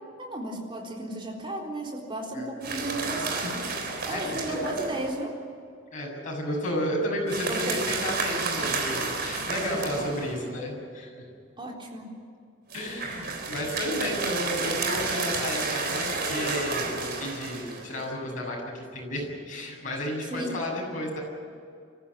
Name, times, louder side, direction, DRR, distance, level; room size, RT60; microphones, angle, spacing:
voice 1, 0.2-3.5 4.1-5.3 7.4-7.8 11.6-12.2 20.3-20.6, right 1 dB, 25° right, 0 dB, 3.9 m, -34 dB
sound 1, 2.6-5.2 7.3-10.5 12.7-18.0, right 4 dB, 55° right, 3.8 m, -31 dB
voice 2, 4.1-4.8 5.9-11.1 12.7-21.2, left 1 dB, 40° left, -2 dB, 7.3 m, -32 dB
25.0 x 14.5 x 9.9 m, 2.3 s
head